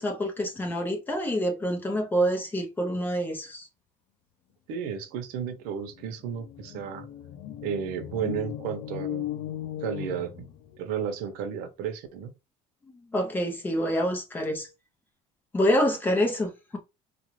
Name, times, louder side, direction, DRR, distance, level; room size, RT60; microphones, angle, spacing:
voice 1, 0.0-3.7 13.1-14.7 15.5-16.8, equal, 15° left, 0.7 m, -27 dB
voice 2, 4.7-7.1 7.6-9.3 9.8-10.5 10.8-12.3, right 8 dB, 85° right, 0.8 m, -33 dB
sound 1, 5.5-5.6 5.8-10.9, left 11 dB, 55° left, 0.4 m, -37 dB
3.7 x 2.4 x 3.1 m
cardioid pair, 170°, 15 cm